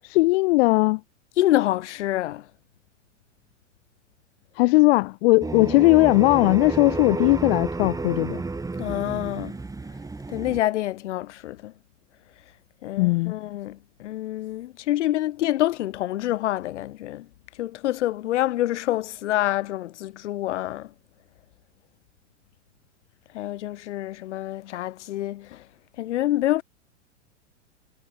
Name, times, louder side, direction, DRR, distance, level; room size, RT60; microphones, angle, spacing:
voice 1, 0.0-1.0 4.6-8.4 13.0-13.3, left 22 dB, 55° left, 0.7 m, -19 dB
voice 2, 1.4-2.5 7.0-7.2 8.8-9.6 10.3-11.7 12.8-17.3 17.6-20.9 23.3-25.6 26.0-26.6, left 14 dB, 70° left, 1.5 m, -27 dB
sound 1, 5.4-10.6, right 3 dB, 10° right, 2.5 m, -31 dB
hypercardioid pair, 110°, 37 cm